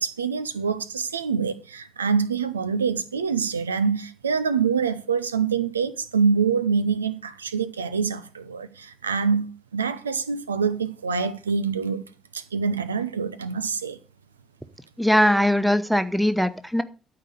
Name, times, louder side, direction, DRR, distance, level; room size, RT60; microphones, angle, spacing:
voice 1, 0.0-9.5 9.7-12.1 12.3-14.0, right 5 dB, 85° right, 0.5 m, -25 dB
voice 2, 15.0-16.8, equal, 5° right, 1.1 m, -20 dB
12.5 x 4.8 x 6.6 m
figure-of-eight pair, 50°, 0 cm